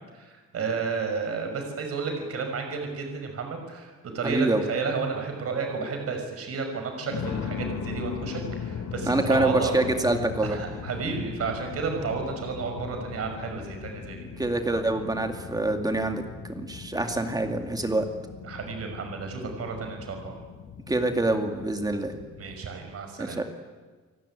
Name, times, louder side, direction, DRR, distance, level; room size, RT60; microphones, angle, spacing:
voice 1, 0.1-9.8 10.4-14.3 18.4-20.3 22.4-23.4, right 5 dB, 45° right, 4 dB, 5.7 m, -32 dB
voice 2, 4.2-4.6 9.0-10.6 14.4-18.1 20.9-22.1 23.2-23.4, right 2 dB, 10° right, 5 dB, 2.4 m, -26 dB
sound 1, 4.3-4.5 5.2-5.3 7.0-22.6, left 7 dB, 70° left, 2.7 m, -38 dB
30.0 x 19.0 x 9.9 m, 1.4 s
cardioid pair, 175°, 32 cm